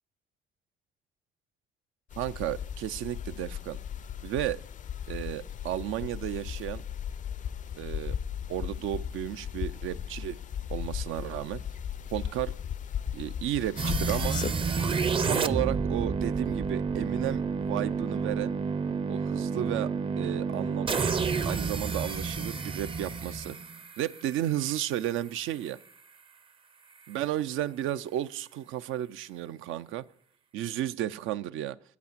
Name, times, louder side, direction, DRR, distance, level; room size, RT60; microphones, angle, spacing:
sound 1, 2.1-14.5, left 8 dB, 40° left, 0.4 m, -36 dB
voice 1, 2.2-3.8 4.2-4.6 5.1-6.8 7.8-8.2 8.5-10.4 10.7-11.6 12.1-12.5 13.1-14.4 15.2-18.5 19.1-21.2 21.5-23.6 24.0-25.8 27.1-30.1 30.5-31.8, right 12 dB, 85° right, 0.4 m, -33 dB
sound 2, 13.8-24.7, right 5 dB, 25° right, 0.5 m, -30 dB
8.5 x 8.2 x 7.3 m
cardioid pair, 90°, 20 cm